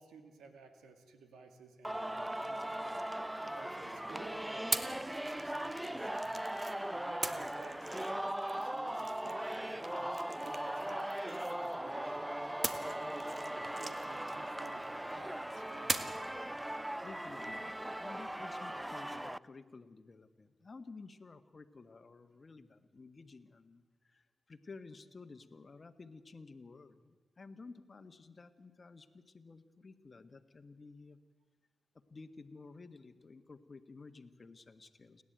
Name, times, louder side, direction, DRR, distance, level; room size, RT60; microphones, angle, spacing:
voice 1, 0.0-6.5 6.9-12.3 12.7-16.2, right 4 dB, 85° right, 7 dB, 2.3 m, -55 dB
Singing, 1.8-19.4, right 1 dB, 10° right, 0.6 m, -39 dB
sound 1, 2.4-3.8 4.7-6.8 7.2-11.9 12.6-15.1 15.9-16.3, right 3 dB, 40° right, 1.8 m, -42 dB
voice 2, 17.0-31.2 32.1-35.2, left 4 dB, 45° left, 10 dB, 1.6 m, -53 dB
29.5 x 11.0 x 9.1 m, 1.3 s
supercardioid pair, 40°, 0 cm